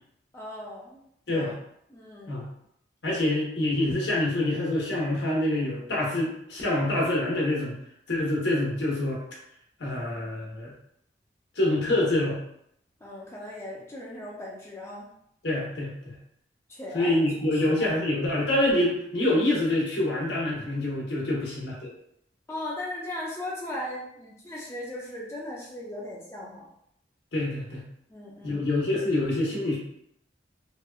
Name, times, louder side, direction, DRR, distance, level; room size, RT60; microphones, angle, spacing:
voice 1, 0.3-1.0 1.3-1.5 1.9-2.4 13.0-15.1 16.7-17.2 17.6-17.9 22.5-26.7 28.1-28.7, left 1 dB, 15° left, -4 dB, 0.4 m, -38 dB
voice 2, 3.0-7.7 8.1-9.2 9.8-10.7 11.6-12.4 15.4-16.1 16.9-21.9 27.3-27.8 28.4-29.8, left 1 dB, 75° left, -4 dB, 0.9 m, -26 dB
2.8 x 2.2 x 2.3 m, 0.73 s
head